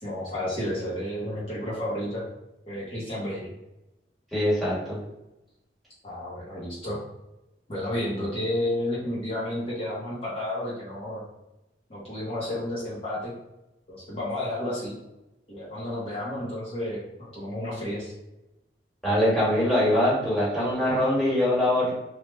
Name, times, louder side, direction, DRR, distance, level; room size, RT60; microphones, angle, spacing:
voice 1, 0.0-2.2 2.7-3.5 6.0-7.0 7.7-11.2 11.9-13.3 13.9-14.9 15.5-17.0 17.3-18.1, left 1 dB, 35° left, -8 dB, 0.8 m, -31 dB
voice 2, 4.3-5.0 19.0-21.9, left 1 dB, ahead, -8 dB, 1.3 m, -23 dB
3.3 x 2.2 x 3.0 m, 0.94 s
head